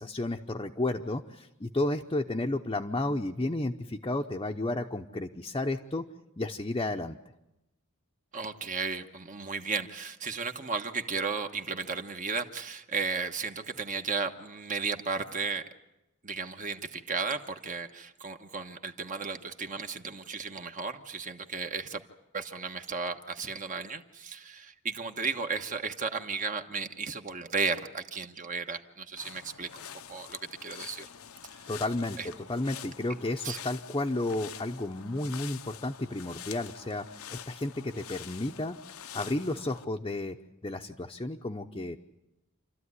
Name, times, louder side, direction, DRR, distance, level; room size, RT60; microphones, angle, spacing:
voice 1, 0.0-6.0 6.4-7.2 31.7-38.8 39.1-40.4 40.6-42.0, left 2 dB, 20° left, 2 dB, 0.8 m, -32 dB
voice 2, 8.3-15.6 16.2-22.0 22.3-31.1 31.6-31.7 32.2-32.3 33.4-33.6, right 5 dB, 40° right, 6 dB, 1.2 m, -34 dB
sound 1, 29.2-39.8, left 9 dB, 75° left, 0.8 m, -46 dB
28.0 x 13.5 x 9.7 m, 0.96 s
head